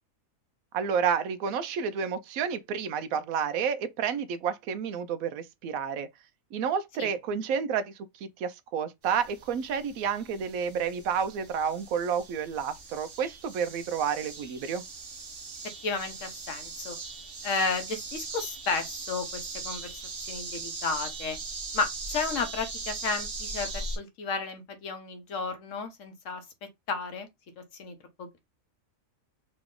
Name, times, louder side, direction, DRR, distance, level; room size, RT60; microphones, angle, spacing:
voice 1, 0.7-6.1 6.5-7.9 8.2-14.8, right 7 dB, 85° right, 1.1 m, -30 dB
sound 1, 9.0-24.0, right 3 dB, 45° right, 1.0 m, -40 dB
voice 2, 15.8-17.0 17.4-21.4 21.7-26.4 26.9-27.3 27.6-28.4, left 4 dB, 65° left, 1.2 m, -33 dB
3.1 x 3.0 x 3.7 m
omnidirectional pair, 1.4 m